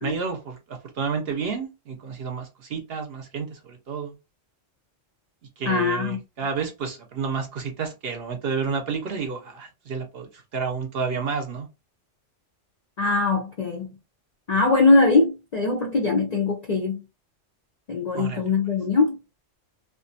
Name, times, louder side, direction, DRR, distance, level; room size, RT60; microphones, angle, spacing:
voice 1, 0.0-4.1 5.6-11.7 18.1-18.4, right 5 dB, 60° right, 0.7 m, -30 dB
voice 2, 5.7-6.2 13.0-13.9 14.5-17.0 17.9-19.2, left 3 dB, 60° left, 0.4 m, -21 dB
2.4 x 2.2 x 2.5 m
omnidirectional pair, 1.3 m